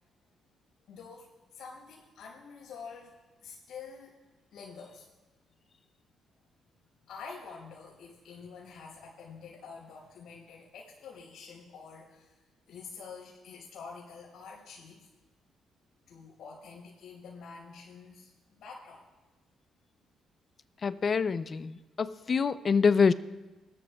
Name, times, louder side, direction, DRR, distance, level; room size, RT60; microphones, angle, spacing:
voice 1, 0.9-3.1 3.4-4.2 4.5-5.1 7.1-12.4 12.7-15.1 16.1-19.1, left 5 dB, 80° left, -8 dB, 5.4 m, -47 dB
voice 2, 20.8-23.1, left 5 dB, 40° left, 13 dB, 0.6 m, -26 dB
23.0 x 14.0 x 2.4 m, 1.2 s
cardioid pair, 90°, 0 cm